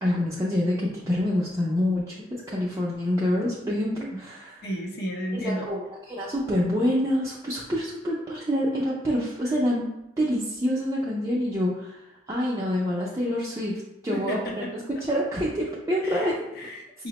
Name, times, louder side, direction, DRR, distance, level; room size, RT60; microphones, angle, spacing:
voice 1, 0.0-4.6 5.3-16.4, equal, 15° right, -6 dB, 0.4 m, -27 dB
voice 2, 4.6-5.7 14.1-14.7 16.0-17.1, equal, 55° left, 1 dB, 0.6 m, -33 dB
4.8 x 2.0 x 2.8 m, 0.87 s
head